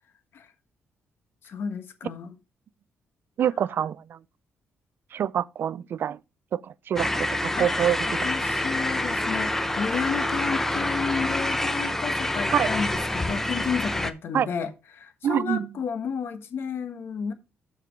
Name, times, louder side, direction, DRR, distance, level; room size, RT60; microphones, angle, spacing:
voice 1, 1.4-2.3 7.5-7.7 8.2-17.3, left 6 dB, 60° left, 1.2 m, -32 dB
voice 2, 3.4-4.0 5.1-6.2 6.5-6.6 6.9-8.0 12.5-12.7 14.3-14.5 15.2-15.7, right 9 dB, 55° right, 0.4 m, -25 dB
sound 1, 7.0-14.1, left 1 dB, 10° left, 0.7 m, -27 dB
7.1 x 4.5 x 5.8 m
cardioid pair, 120°, 4 cm